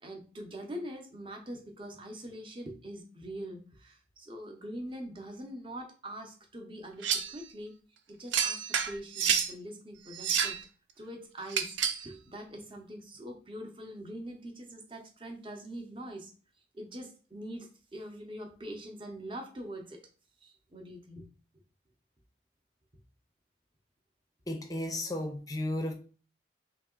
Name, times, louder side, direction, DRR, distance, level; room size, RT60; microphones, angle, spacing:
voice 1, 0.0-7.7 8.1-10.6 11.0-16.3 16.7-20.0 20.4-21.3, right 1 dB, 25° right, 0.7 m, -43 dB
sound 1, 7.0-7.4 8.3-9.5 10.1-10.6 11.5-12.1, right 7 dB, 80° right, 0.5 m, -29 dB
voice 2, 24.5-25.9, left 1 dB, 20° left, 0.5 m, -34 dB
3.3 x 2.8 x 3.8 m
head